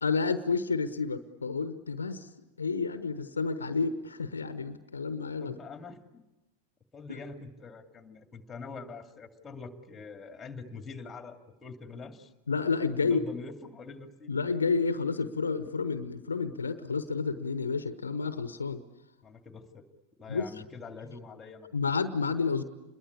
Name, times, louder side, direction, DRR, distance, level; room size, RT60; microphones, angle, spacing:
voice 1, 0.0-2.3 2.6-5.6 7.1-7.2 12.5-13.2 14.3-18.8 20.3-20.5 21.7-22.6, left 4 dB, 75° left, 12 dB, 1.1 m, -30 dB
voice 2, 5.4-6.2 6.9-12.3 13.0-14.4 19.2-19.9 20.2-21.8, left 4 dB, 15° left, 7 dB, 2.5 m, -44 dB
28.0 x 22.0 x 8.5 m, 1.0 s
figure-of-eight pair, 90°, 0 cm